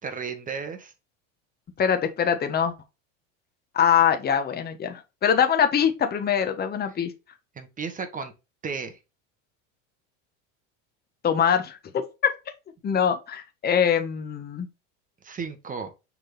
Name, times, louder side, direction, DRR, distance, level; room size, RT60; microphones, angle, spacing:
voice 1, 0.0-0.9 7.5-8.3 8.6-9.0 15.2-15.9, right 5 dB, 20° right, 1.5 m, -34 dB
voice 2, 1.8-2.7 3.7-7.1 11.2-12.0 12.8-14.7, left 8 dB, 25° left, 1.1 m, -23 dB
6.5 x 3.9 x 4.1 m
supercardioid pair, 115°, 37 cm